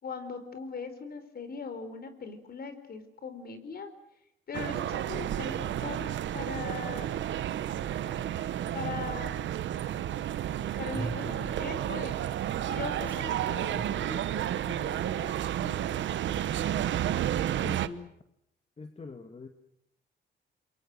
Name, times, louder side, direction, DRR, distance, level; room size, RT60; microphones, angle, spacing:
voice 1, 0.0-3.9 4.5-6.1 6.3-7.1 8.7-9.3 10.8-15.3 15.6-15.9, left 5 dB, 50° left, 10 dB, 4.5 m, -40 dB
sound 1, 4.5-17.9, right 11 dB, 70° right, 1.1 m, -31 dB
sound 2, 10.9-13.8, right 2 dB, 10° right, 3.8 m, -46 dB
voice 2, 17.6-18.2 18.8-19.5, left 4 dB, 30° left, 6 dB, 2.1 m, -43 dB
28.0 x 23.0 x 6.4 m, 0.75 s
cardioid pair, 90°, 20 cm